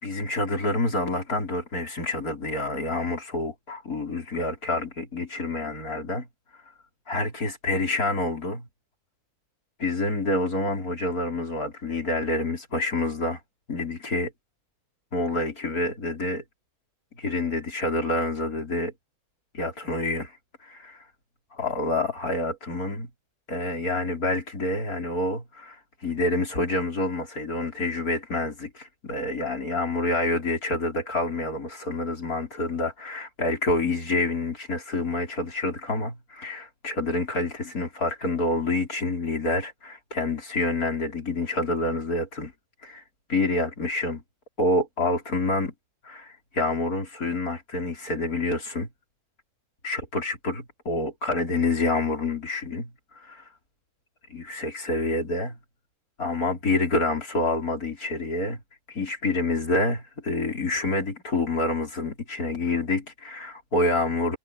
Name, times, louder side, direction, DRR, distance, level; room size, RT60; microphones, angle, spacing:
voice 1, 0.0-6.3 7.1-8.7 9.8-13.4 13.7-14.3 15.1-16.4 17.2-18.9 19.5-20.3 20.6-21.0 21.5-23.1 23.5-42.5 42.8-43.0 43.3-44.2 44.6-45.7 46.0-48.9 49.8-52.9 53.2-53.4 54.3-55.6 56.2-58.6 58.9-64.4, left 2 dB, 70° left, 5.4 m, -27 dB
omnidirectional pair, 1.6 m